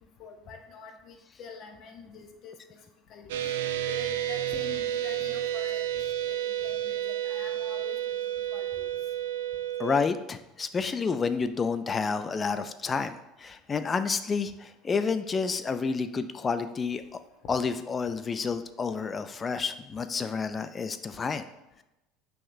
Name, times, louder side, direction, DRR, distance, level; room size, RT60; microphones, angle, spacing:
voice 1, 0.2-2.5 3.1-3.5 3.9-8.0 8.5-9.0 17.4-17.5, left 4 dB, 50° left, 5 dB, 0.8 m, -45 dB
sound 1, 3.3-10.0, right 12 dB, 85° right, 0.4 m, -31 dB
voice 2, 9.8-17.0 17.5-21.5, left 5 dB, 30° left, 10 dB, 0.3 m, -30 dB
5.4 x 3.7 x 2.6 m, 0.92 s
hypercardioid pair, 90°, 0 cm